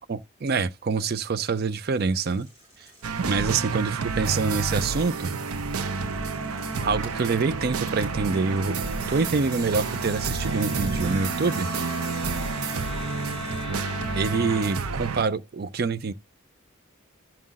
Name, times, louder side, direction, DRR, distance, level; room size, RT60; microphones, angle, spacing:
voice 1, 0.1-2.5 3.2-5.3 6.8-8.8 9.1-11.7 14.2-16.1, right 4 dB, 45° right, 0.4 m, -26 dB
sound 1, 1.6-13.6, equal, 15° right, 4.0 m, -51 dB
sound 2, 3.0-15.2, right 4 dB, 90° right, 0.6 m, -30 dB
Wind instrument woodwind instrument, 3.3-14.8, left 4 dB, 30° left, 0.4 m, -40 dB
15.5 x 5.6 x 2.4 m
head